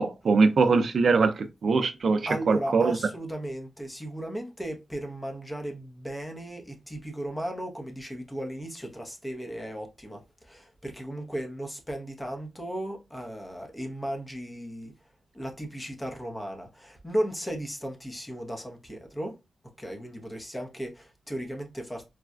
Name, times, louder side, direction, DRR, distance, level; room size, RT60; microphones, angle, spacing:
voice 1, 0.0-1.3 1.6-3.0, right 4 dB, 65° right, 0.4 m, -22 dB
voice 2, 2.3-14.9 15.3-19.4 19.8-22.1, right 1 dB, 10° left, 0.7 m, -36 dB
4.0 x 2.3 x 2.3 m
wide cardioid pair, 125°, 0 cm